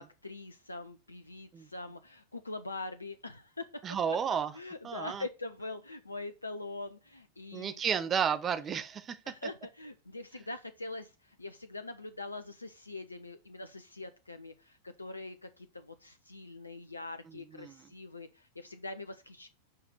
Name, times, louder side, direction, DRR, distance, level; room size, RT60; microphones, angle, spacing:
voice 1, 0.0-3.8 4.1-4.2 4.5-7.8 9.2-19.5, left 2 dB, 80° left, 0.7 m, -43 dB
voice 2, 3.8-4.5 4.8-5.2 7.5-9.2 17.6-17.8, right 7 dB, 25° right, 1.0 m, -32 dB
7.7 x 4.9 x 6.2 m
figure-of-eight pair, 90°, 0 cm